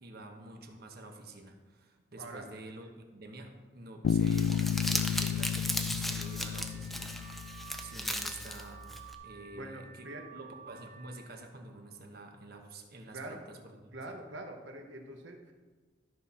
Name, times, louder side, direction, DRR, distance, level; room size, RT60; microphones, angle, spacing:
voice 1, 0.0-7.5 7.8-8.9 9.2-14.1, right 2 dB, 50° right, 4 dB, 1.1 m, -48 dB
Bass guitar, 4.0-7.7, left 8 dB, 90° left, 0.3 m, -32 dB
Crumpling crinkling, 4.1-9.1, equal, ahead, 0.5 m, -37 dB
Car / Alarm, 6.0-11.4, right 7 dB, 35° right, 0.8 m, -53 dB
voice 2, 9.5-10.3 13.1-13.4 13.9-15.5, right 2 dB, 70° right, 3 dB, 1.1 m, -44 dB
13.0 x 4.3 x 5.7 m, 1.4 s
head